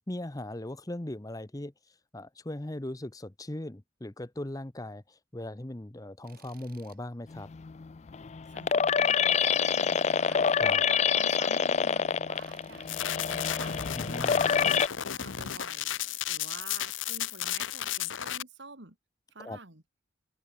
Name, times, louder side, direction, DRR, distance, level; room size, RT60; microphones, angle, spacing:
voice 1, 0.1-7.5 10.6-10.8 13.9-14.5 19.4-19.6, left 1 dB, 20° left, 0.8 m, -39 dB
Tools, 6.2-7.0 7.4-7.5 9.3-10.4 12.3-13.1 15.3-16.2, right 6 dB, 45° right, 5.0 m, -58 dB
sound 1, 7.3-14.9, left 6 dB, 35° left, 0.4 m, -26 dB
voice 2, 8.5-14.0 14.4-14.7 15.1-19.0 19.3-19.8, right 3 dB, 60° right, 2.9 m, -49 dB
sound 2, 12.9-18.4, left 11 dB, 75° left, 0.8 m, -34 dB
open air
head